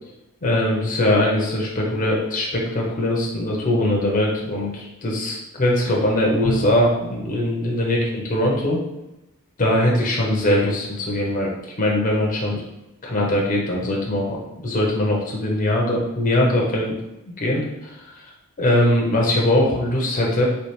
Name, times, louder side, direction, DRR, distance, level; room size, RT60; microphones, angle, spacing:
voice 1, 0.4-8.0 8.3-8.8 9.6-11.5 11.8-12.6 13.0-17.0 17.3-18.1 18.6-20.4, left 1 dB, 35° left, -2 dB, 0.6 m, -21 dB
Bowed string instrument, 6.4-7.3, left 2 dB, 70° left, 0.8 m, -29 dB
3.2 x 3.0 x 3.0 m, 0.95 s
head